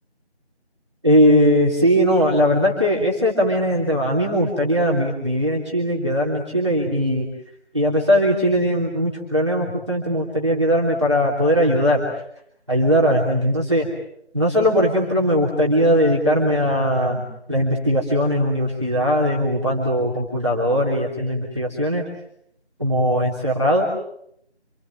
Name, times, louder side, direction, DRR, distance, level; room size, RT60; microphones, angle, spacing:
voice 1, 1.0-7.3 7.7-12.1 12.7-13.9 14.3-22.0 22.8-23.8, equal, 25° right, -4 dB, 3.2 m, -19 dB
27.0 x 22.5 x 7.6 m, 0.72 s
figure-of-eight pair, 180°, 34 cm